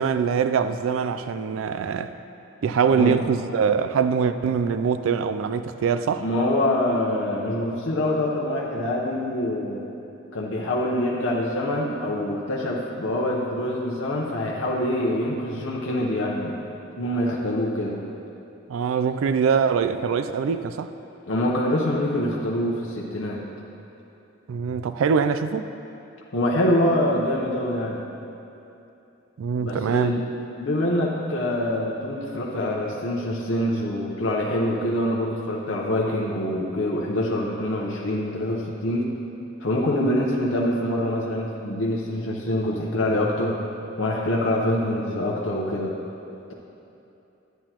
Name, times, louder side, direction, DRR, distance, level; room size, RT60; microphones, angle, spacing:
voice 1, 0.0-2.1 2.6-6.2 18.7-20.9 24.5-25.7 29.4-30.2, right 6 dB, 80° right, 0.3 m, -23 dB
voice 2, 6.2-9.8 10.3-16.6 17.0-18.0 21.3-23.4 26.3-28.0 29.6-30.2 30.6-39.1 39.6-43.6 44.0-45.9, left 1 dB, 70° left, 0.8 m, -25 dB
11.0 x 9.1 x 2.9 m
head